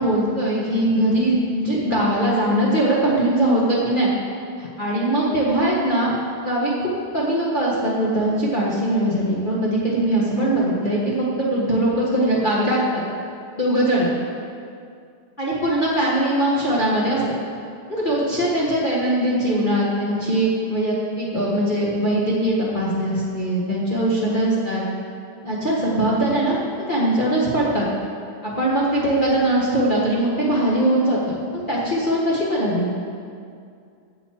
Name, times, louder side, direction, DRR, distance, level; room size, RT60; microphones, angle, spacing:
voice 1, 0.0-4.1 4.6-6.1 6.4-13.0 13.6-14.1 15.4-17.2 17.9-24.8 25.4-27.9 28.4-31.2 31.5-32.9, right 1 dB, 90° left, -7 dB, 0.4 m, -21 dB
9.4 x 7.1 x 7.4 m, 2.4 s
omnidirectional pair, 3.4 m